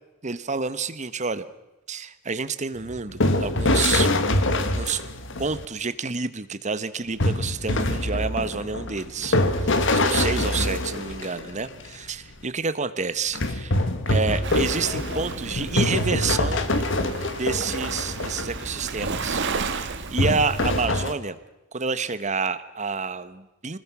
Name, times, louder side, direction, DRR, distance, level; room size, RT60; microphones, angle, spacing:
voice 1, 0.2-1.5 1.9-4.1 4.8-5.0 5.4-13.8 14.1-16.7 17.4-21.4 21.7-23.8, right 4 dB, 35° right, 13 dB, 1.1 m, -29 dB
sound 1, 2.8-5.6 7.2-11.9 13.3-18.6 19.0-19.2 20.2-21.1, left 2 dB, 60° left, 1.7 m, -24 dB
Waves surf, 14.4-20.9, right 4 dB, 60° right, 1.7 m, -33 dB
26.0 x 20.0 x 6.1 m, 1.0 s
head